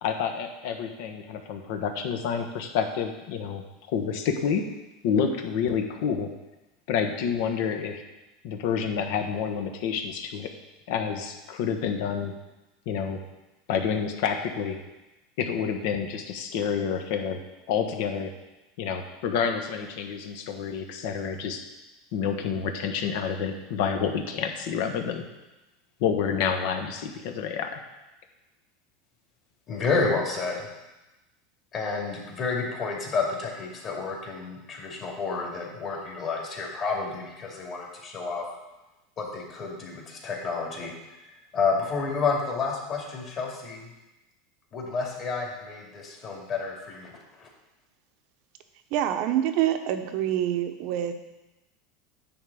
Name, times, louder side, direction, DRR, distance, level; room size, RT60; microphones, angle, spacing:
voice 1, 0.0-3.6 3.9-4.7 5.0-6.3 6.9-8.0 8.4-10.5 10.9-12.3 12.9-13.2 13.7-14.8 15.4-17.4 17.7-18.3 18.8-21.6 22.1-25.2 26.0-27.8, left 7 dB, 65° left, 5 dB, 1.2 m, -28 dB
voice 2, 29.7-30.7 31.7-38.4 39.2-40.9 41.5-43.9 44.7-47.1 47.4-47.5, left 4 dB, 35° left, -2 dB, 2.4 m, -30 dB
voice 3, 48.9-51.1, right 11 dB, 55° right, 8 dB, 0.8 m, -26 dB
10.0 x 3.8 x 7.0 m, 1.0 s
supercardioid pair, 140°, 0 cm